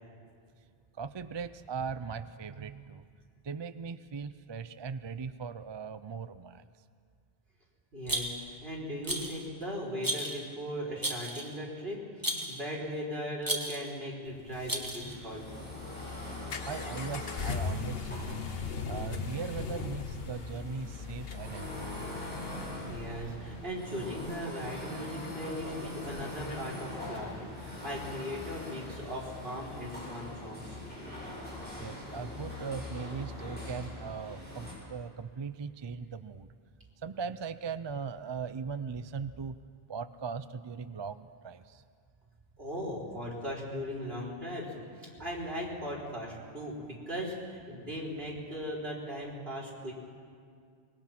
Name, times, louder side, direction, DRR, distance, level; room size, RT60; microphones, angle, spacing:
voice 1, 1.0-3.0 3.4-6.7 16.7-18.1 18.9-22.1 31.8-36.5 37.0-39.6 39.9-41.8, right 5 dB, 35° right, 13 dB, 0.4 m, -39 dB
voice 2, 7.9-15.4 22.9-30.8 42.6-49.9, equal, 70° right, -5 dB, 4.7 m, -38 dB
Rattle, 8.1-8.6 9.0-9.4 10.0-10.4 11.0-11.6 12.2-12.6 13.4-13.9 14.7-15.2, right 1 dB, 20° right, 1.9 m, -34 dB
sound 1, 14.3-28.1, left 5 dB, 70° left, 1.2 m, -41 dB
sound 2, 15.0-34.7, left 1 dB, 10° left, 7.4 m, -42 dB
24.0 x 21.5 x 5.9 m, 2.2 s
omnidirectional pair, 1.1 m